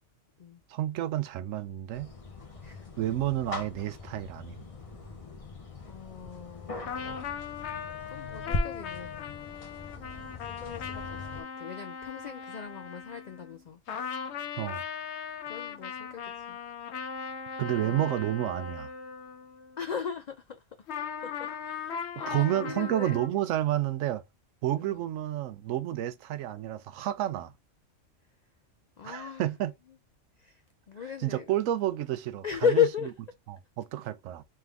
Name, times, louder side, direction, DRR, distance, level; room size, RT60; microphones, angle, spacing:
voice 1, 0.7-2.1 3.0-4.6 14.6-14.8 17.6-18.9 22.3-24.2 24.6-27.5 29.0-29.7 31.2-32.4 32.7-32.8 33.5-34.4, right 13 dB, 90° right, 1.0 m, -30 dB
sound 1, 1.9-11.4, left 2 dB, 35° left, 0.7 m, -40 dB
voice 2, 5.9-6.9 8.1-9.2 10.4-13.8 15.5-16.6 17.8-18.1 19.8-20.6 20.9-23.2 24.8-25.0 29.0-29.4 30.4-30.6 30.9-31.5 32.4-33.1, left 7 dB, 80° left, 0.3 m, -34 dB
sound 2, 6.9-13.6 13.9-19.8 20.9-23.3, left 7 dB, 65° left, 0.8 m, -39 dB
3.6 x 3.3 x 3.3 m
omnidirectional pair, 1.3 m